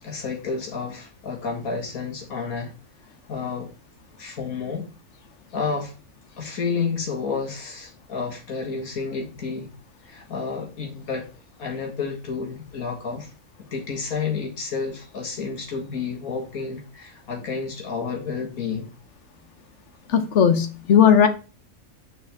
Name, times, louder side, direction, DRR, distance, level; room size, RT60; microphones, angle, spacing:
voice 1, 0.0-2.7 3.3-3.7 4.2-4.9 5.5-5.9 6.4-9.7 10.1-11.3 11.6-13.3 13.7-18.9, left 5 dB, 85° left, 2.1 m, -30 dB
voice 2, 20.1-21.3, left 8 dB, 60° left, 1.0 m, -16 dB
6.4 x 4.4 x 3.5 m
omnidirectional pair, 1.5 m